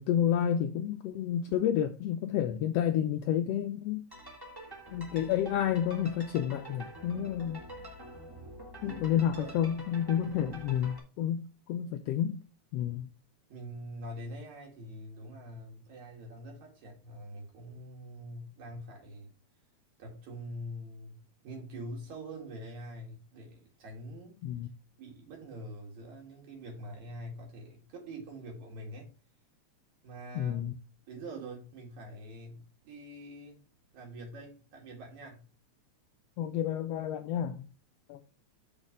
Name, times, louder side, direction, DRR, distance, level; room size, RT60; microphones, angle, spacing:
voice 1, 0.0-4.1 4.9-7.6 8.8-12.4 12.7-13.1 24.4-24.7 30.3-30.7 36.4-37.7 38.1-38.2, left 10 dB, 85° left, 1.4 m, -30 dB
sound 1, 4.1-11.0, equal, 10° right, 1.2 m, -47 dB
voice 2, 10.2-10.6 13.5-19.3 20.0-24.4 25.0-29.1 30.0-30.6 31.1-33.7 33.9-35.5, right 1 dB, 75° right, 3.5 m, -45 dB
6.1 x 4.1 x 5.0 m
omnidirectional pair, 3.3 m